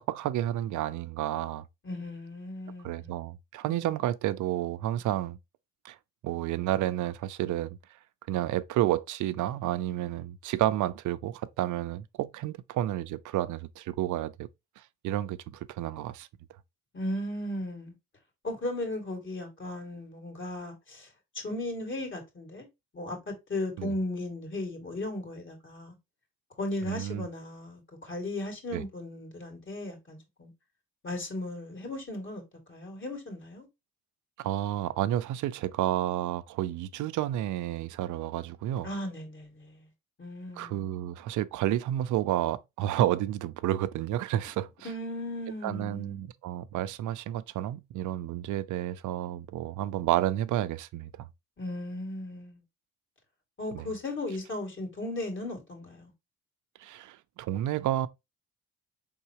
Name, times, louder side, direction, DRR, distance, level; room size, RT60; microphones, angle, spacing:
voice 1, 0.0-1.6 2.8-5.4 5.8-6.0 6.2-7.8 8.3-14.5 14.8-16.3 23.8-23.9 26.9-27.3 28.7-28.8 34.4-38.9 40.6-44.9 45.6-51.3 53.7-53.9 56.8-58.1, right 13 dB, 75° right, 0.5 m, -30 dB
voice 2, 1.8-3.2 3.7-3.9 16.9-17.9 18.4-21.1 21.3-22.7 22.9-26.0 26.6-30.5 31.0-32.4 32.7-33.7 38.8-39.9 40.2-40.9 44.8-46.2 51.6-52.6 53.6-56.1, left 1 dB, 40° left, 2.3 m, -36 dB
4.6 x 3.6 x 2.9 m
cardioid pair, 90°, 30 cm